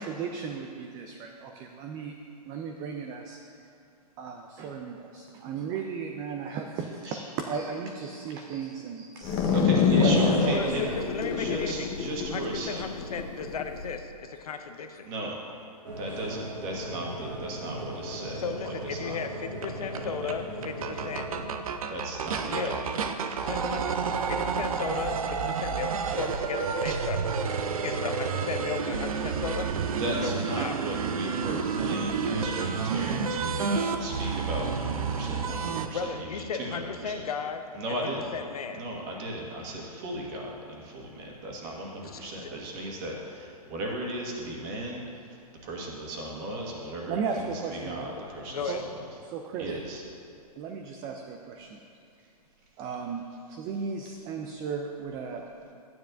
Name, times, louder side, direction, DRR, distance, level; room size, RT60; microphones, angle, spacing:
voice 1, 0.0-2.2 2.4-3.4 4.2-11.0 18.2-18.4 22.3-22.5 47.1-48.2 48.7-48.8 49.3-49.7 50.6-51.8 52.8-55.5, right 5 dB, 20° right, 3 dB, 0.4 m, -35 dB
sound 1, 9.2-13.9, left 5 dB, 25° left, 0.9 m, -26 dB
voice 2, 9.5-10.9 11.4-12.8 15.0-15.4 16.0-19.2 19.6-20.0 21.9-22.9 23.2-23.5 30.0-37.2 37.7-38.3 38.7-45.4 45.6-48.8 49.6-50.0, right 1 dB, 35° right, -2 dB, 1.7 m, -36 dB
voice 3, 10.5-11.9 12.3-15.1 18.4-21.3 22.4-22.8 23.4-24.0 24.3-27.2 27.8-29.7 30.1-30.7 35.9-38.8 42.0-42.5 48.5-48.8, left 6 dB, 65° left, 7 dB, 0.7 m, -35 dB
sound 2, 15.8-21.5, equal, 80° right, 1.7 m, -38 dB
sound 3, 19.6-19.7 19.9-20.0 20.3-20.4 20.6-35.9, right 5 dB, 60° right, 0.7 m, -30 dB
12.0 x 9.3 x 2.6 m, 2.5 s
hypercardioid pair, 130°, 21 cm